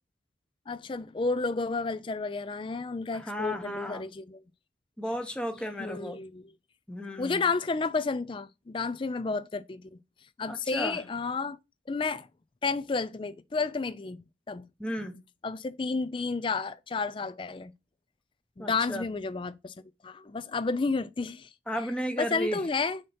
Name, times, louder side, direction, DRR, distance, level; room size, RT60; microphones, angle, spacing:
voice 1, 0.7-4.4 5.8-6.5 7.2-10.0 10.4-11.6 11.9-12.3 12.6-14.2 14.5-14.7 15.4-17.7 18.6-21.5 22.2-23.0, left 4 dB, 25° left, 0.3 m, -31 dB
voice 2, 3.1-4.0 5.0-6.2 6.9-7.4 10.5-11.0 14.8-15.2 18.6-19.1 21.7-22.6, equal, 5° left, 0.8 m, -34 dB
6.4 x 2.9 x 5.5 m
head